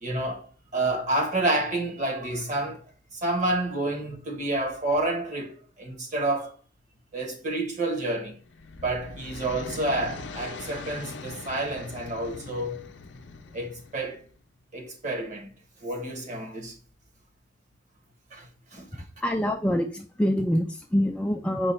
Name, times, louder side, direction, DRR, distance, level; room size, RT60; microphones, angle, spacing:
voice 1, 0.0-2.8 3.1-6.5 7.1-8.3 8.8-12.9 13.5-14.2 14.7-15.5 15.8-16.7 18.3-18.5 18.7-19.0, right 2 dB, 40° right, 1.2 m, -29 dB
sound 1, 8.3-14.3, left 3 dB, 70° left, 0.5 m, -41 dB
voice 2, 18.9-21.7, equal, 5° left, 0.3 m, -26 dB
5.0 x 2.3 x 4.0 m
head